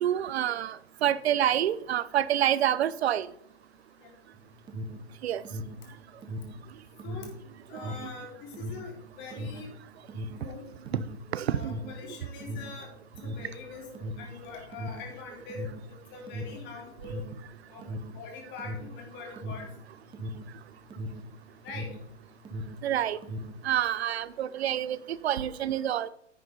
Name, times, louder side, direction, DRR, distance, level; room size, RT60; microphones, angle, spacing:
voice 1, 0.0-0.8 1.0-3.3 5.2-5.4 7.7-7.9 11.3-11.7 22.8-23.2 23.6-26.1, right 11 dB, 65° right, 17 dB, 0.8 m, -27 dB
Alarm, 4.3-22.1 22.4-23.7, equal, 15° right, 1.3 m, -39 dB
voice 2, 7.7-9.7 10.4-10.7 11.5-12.9 13.2-17.3 17.7-19.7 21.6-21.9, left 4 dB, 30° left, 2 dB, 3.7 m, -43 dB
9.8 x 9.6 x 4.0 m, 0.70 s
hypercardioid pair, 120°, 35 cm